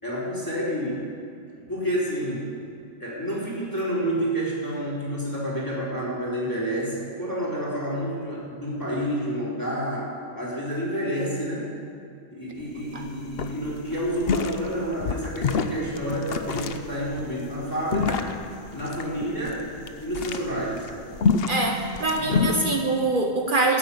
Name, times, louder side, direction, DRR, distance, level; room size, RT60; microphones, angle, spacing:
voice 1, 0.0-1.0 1.7-2.5 3.0-11.7 12.3-18.3 18.7-19.7 20.0-20.9 22.1-22.5, equal, 20° left, -7 dB, 4.3 m, -29 dB
sound 1, 12.6-12.7 13.0-13.1 13.4-22.6, left 5 dB, 70° left, 1.0 m, -28 dB
voice 2, 21.5-23.8, right 3 dB, 55° right, 3 dB, 1.1 m, -24 dB
13.5 x 10.0 x 8.6 m, 2.4 s
omnidirectional pair, 1.0 m